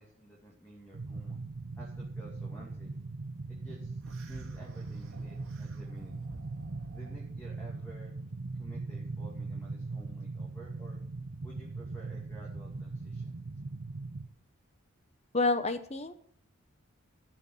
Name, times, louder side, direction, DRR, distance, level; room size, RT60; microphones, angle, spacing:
voice 1, 0.0-1.4 1.8-2.9 3.5-4.0 4.3-6.2 6.9-8.1 8.6-11.0 11.4-13.4, right 1 dB, 10° left, -4 dB, 2.3 m, -52 dB
sound 1, 0.9-14.3, right 3 dB, 55° right, 0.7 m, -40 dB
sound 2, 4.0-7.4, right 1 dB, 80° right, 2.0 m, -53 dB
voice 2, 15.3-16.2, left 3 dB, 30° left, 10 dB, 0.9 m, -29 dB
13.5 x 5.9 x 7.9 m, 0.65 s
head